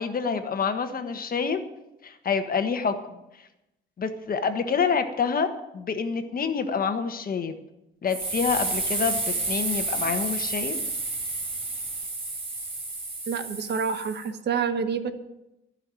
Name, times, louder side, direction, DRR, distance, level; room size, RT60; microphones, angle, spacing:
voice 1, 0.0-1.6 2.0-2.9 4.0-7.6 8.0-10.8, left 6 dB, 45° left, 8 dB, 1.4 m, -27 dB
sound 1, 8.1-14.3, right 2 dB, 30° right, 3.6 m, -30 dB
voice 2, 13.3-15.1, right 6 dB, 60° right, 9 dB, 1.2 m, -28 dB
14.5 x 5.8 x 9.0 m, 0.91 s
cardioid pair, 90°, 20 cm